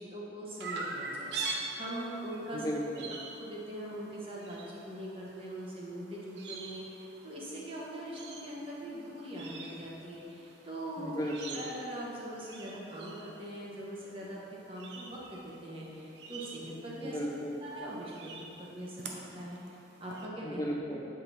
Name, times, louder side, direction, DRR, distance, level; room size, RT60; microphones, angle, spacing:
voice 1, 0.0-2.6 3.4-11.1 11.5-17.3 17.6-19.6 20.0-20.8, right 1 dB, 30° right, -5 dB, 1.4 m, -42 dB
Chirp tweet, 0.6-20.3, right 3 dB, 80° right, 0.8 m, -45 dB
voice 2, 2.5-3.1 11.0-11.6 17.0-17.6 20.4-21.0, equal, 20° left, -3 dB, 0.8 m, -35 dB
8.5 x 5.3 x 4.3 m, 2.8 s
head